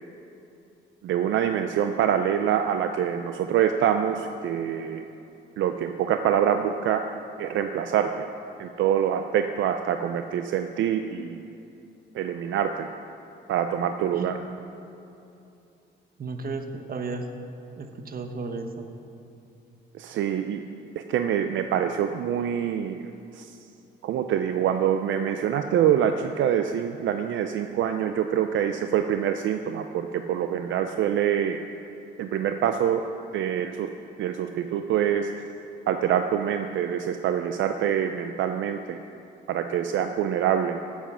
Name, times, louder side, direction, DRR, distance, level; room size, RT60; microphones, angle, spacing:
voice 1, 1.0-5.0 5.6-7.0 7.4-8.3 8.6-11.4 12.1-12.9 13.5-14.4 19.9-20.6 21.0-23.0 23.3-23.6 24.0-31.6 32.2-33.0 33.3-33.9 34.2-35.4 35.9-39.0 39.5-40.8, right 9 dB, 75° right, 7 dB, 0.5 m, -25 dB
voice 2, 16.2-17.3 17.8-18.9, right 3 dB, 45° right, 6 dB, 1.2 m, -33 dB
14.5 x 7.3 x 5.6 m, 2.8 s
cardioid pair, 90°, 20 cm